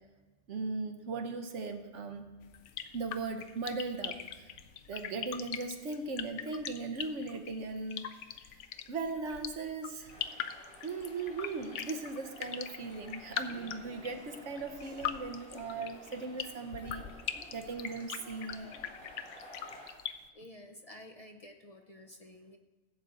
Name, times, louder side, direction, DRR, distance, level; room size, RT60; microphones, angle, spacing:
voice 1, 0.5-2.2 2.9-4.5 4.9-8.3 8.9-10.1 10.8-17.1 17.5-18.7, right 3 dB, 70° right, 7 dB, 1.1 m, -38 dB
sound 1, 2.4-20.1, left 9 dB, 75° left, 0.9 m, -41 dB
sound 2, 10.1-19.9, equal, 5° left, 3.0 m, -53 dB
voice 2, 20.3-22.6, left 1 dB, 45° left, 4 dB, 0.4 m, -51 dB
16.0 x 7.6 x 4.0 m, 1.2 s
omnidirectional pair, 1.3 m